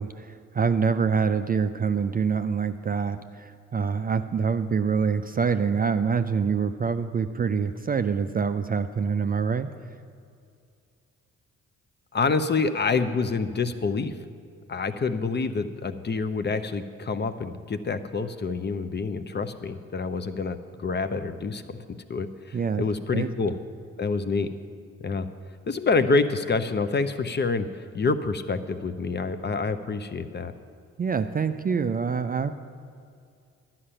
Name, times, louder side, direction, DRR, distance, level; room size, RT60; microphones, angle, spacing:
voice 1, 0.0-9.7 22.5-22.8 23.1-23.3 31.0-32.5, right 6 dB, 25° right, 9 dB, 0.4 m, -25 dB
voice 2, 12.1-14.1 14.7-21.6 21.9-23.5 24.0-24.5 25.0-25.3 25.7-27.7 27.9-30.5, left 4 dB, 30° left, 11 dB, 0.7 m, -27 dB
11.0 x 5.8 x 8.8 m, 2.3 s
hypercardioid pair, 45°, 36 cm